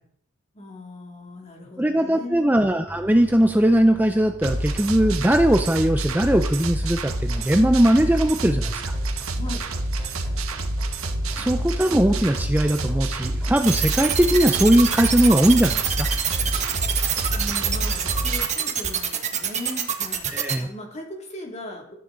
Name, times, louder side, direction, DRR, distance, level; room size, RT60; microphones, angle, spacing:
voice 1, 0.5-2.5 9.3-9.7 17.3-21.9, left 1 dB, 35° left, 1 dB, 2.8 m, -38 dB
voice 2, 1.8-8.9 11.4-16.1 20.3-20.7, right 1 dB, 10° right, 6 dB, 0.6 m, -20 dB
sound 1, 2.9-18.5, equal, 15° left, 3.4 m, -43 dB
sound 2, 4.4-18.5, right 1 dB, 85° right, 1.3 m, -27 dB
sound 3, 13.6-20.5, right 8 dB, 35° right, 1.4 m, -25 dB
14.0 x 13.5 x 4.0 m, 0.66 s
head